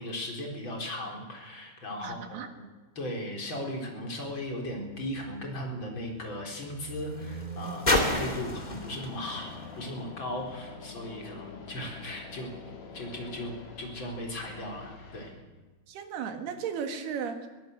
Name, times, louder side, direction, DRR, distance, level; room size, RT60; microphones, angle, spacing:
voice 1, 0.0-2.4 3.0-12.5 12.9-15.3, left 1 dB, 30° left, 1 dB, 4.5 m, -37 dB
voice 2, 2.0-2.5 15.9-17.5, right 7 dB, 80° right, 7 dB, 4.0 m, -35 dB
sound 1, 4.4-10.8 11.7-11.8, left 1 dB, 15° left, 2.0 m, -33 dB
sound 2, 8.7-15.3, left 5 dB, 65° left, 5.0 m, -46 dB
22.0 x 16.5 x 7.9 m, 1.2 s
omnidirectional pair, 4.5 m